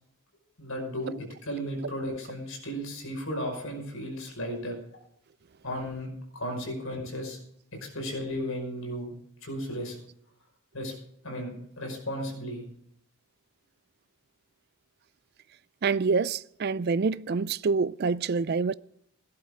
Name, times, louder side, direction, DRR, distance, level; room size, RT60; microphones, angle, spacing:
voice 1, 0.6-1.1 1.4-4.8 5.6-7.4 7.8-9.1 9.4-10.0 10.7-10.9 11.2-12.7, equal, 70° left, 5.4 m, -34 dB
voice 2, 15.8-18.7, right 4 dB, 45° right, 0.4 m, -26 dB
17.5 x 11.5 x 3.7 m
head